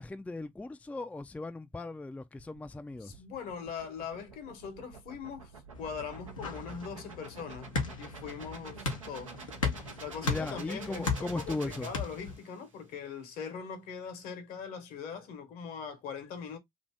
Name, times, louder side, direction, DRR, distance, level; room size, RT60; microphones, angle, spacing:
voice 1, 0.0-3.2 10.2-11.9, left 2 dB, 10° left, 0.4 m, -38 dB
sound 1, 2.4-12.7, right 4 dB, 90° right, 0.6 m, -48 dB
voice 2, 3.0-9.3 10.0-16.6, left 6 dB, 65° left, 1.0 m, -41 dB
sound 2, 5.7-12.4, left 4 dB, 85° left, 0.7 m, -37 dB
2.7 x 2.5 x 3.3 m
figure-of-eight pair, 40°, 16 cm